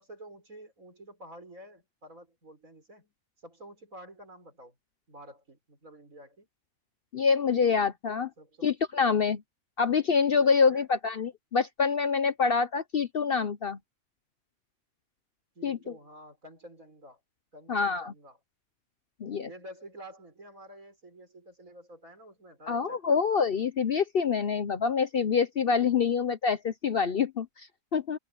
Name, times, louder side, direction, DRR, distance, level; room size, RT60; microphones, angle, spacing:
voice 1, 0.0-3.1 3.4-4.8 5.1-6.5 7.8-7.9 8.4-8.7 10.7-10.9 15.6-17.2 17.5-18.4 19.4-23.2, right 1 dB, 70° right, 7.1 m, -50 dB
voice 2, 7.1-8.3 8.6-9.4 9.8-13.8 15.6-15.9 17.7-18.1 19.2-19.5 22.7-28.2, left 5 dB, 50° left, 0.8 m, -26 dB
omnidirectional pair, 1.5 m